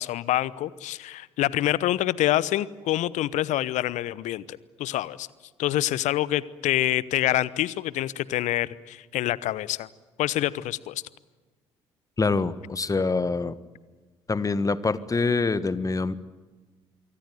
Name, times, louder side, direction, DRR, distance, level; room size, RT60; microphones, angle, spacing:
voice 1, 0.0-5.3 5.6-9.9 10.2-11.0, left 14 dB, 60° left, 20 dB, 0.9 m, -26 dB
voice 2, 12.2-13.6 14.3-16.1, left 4 dB, 25° left, 15 dB, 1.5 m, -25 dB
26.0 x 23.5 x 9.3 m, 1.3 s
figure-of-eight pair, 45°, 14 cm